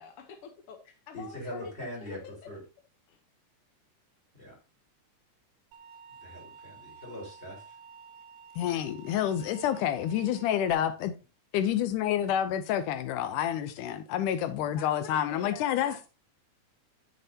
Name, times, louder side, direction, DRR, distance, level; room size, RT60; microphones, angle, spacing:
voice 1, 0.0-1.7 2.0-2.5 3.1-3.2 14.7-16.1, left 7 dB, 70° left, 1.4 m, -46 dB
voice 2, 1.1-2.2 2.5-2.6 4.4-4.6 6.2-7.6, left 1 dB, 20° left, 4.6 m, -41 dB
sound 1, 5.7-10.7, right 5 dB, 80° right, 2.3 m, -51 dB
voice 3, 8.6-11.2 11.5-16.1, left 10 dB, 85° left, 2.3 m, -28 dB
11.5 x 6.7 x 2.8 m
omnidirectional pair, 3.5 m